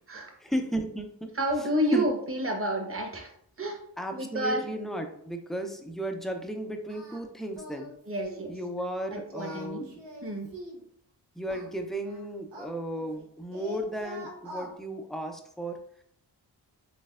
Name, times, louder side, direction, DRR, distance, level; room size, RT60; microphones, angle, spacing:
voice 1, 0.4-1.3 1.9-2.1 4.0-7.9 8.5-10.0 11.4-15.8, right 1 dB, ahead, 4 dB, 0.5 m, -34 dB
voice 2, 1.3-3.3 3.6-3.8 4.1-4.6 8.1-8.5 9.1-9.9 10.2-10.5, equal, 30° right, 2 dB, 1.1 m, -30 dB
Singing, 6.9-7.2 7.5-7.9 8.2-8.5 9.2-10.8 11.5-13.2 13.5-14.7, equal, 85° right, 1.0 m, -44 dB
4.2 x 3.2 x 2.4 m, 0.66 s
cardioid pair, 50°, 42 cm